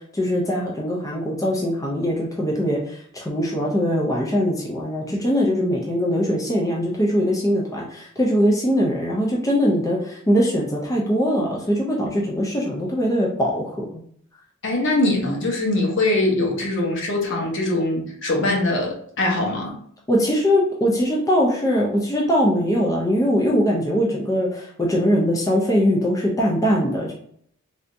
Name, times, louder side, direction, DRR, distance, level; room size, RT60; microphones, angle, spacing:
voice 1, 0.1-13.8 20.1-27.1, equal, 15° left, -3 dB, 0.5 m, -21 dB
voice 2, 14.6-19.8, left 2 dB, 60° left, -1 dB, 0.9 m, -22 dB
3.4 x 2.7 x 2.6 m, 0.63 s
head